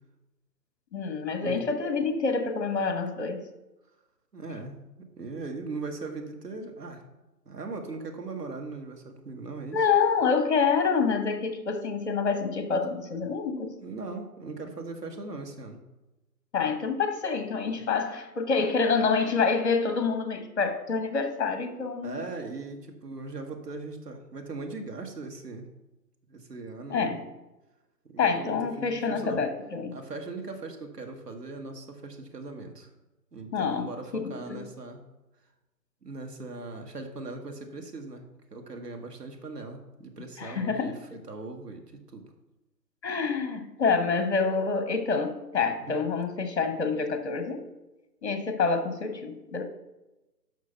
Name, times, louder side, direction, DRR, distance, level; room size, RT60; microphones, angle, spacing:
voice 1, 0.9-3.4 9.7-13.8 16.5-22.2 26.9-27.2 28.2-30.0 33.5-34.7 40.4-41.0 43.0-47.7 48.2-49.6, left 5 dB, 40° left, 7 dB, 1.3 m, -27 dB
voice 2, 4.3-7.0 7.5-9.9 13.6-15.8 22.0-25.7 26.3-27.2 28.0-29.4 29.9-32.9 33.3-35.0 36.0-38.2 38.5-41.8 42.1-42.3 45.8-45.9, right 3 dB, 70° right, 4 dB, 2.0 m, -39 dB
11.5 x 6.0 x 4.5 m, 1.0 s
figure-of-eight pair, 150°, 49 cm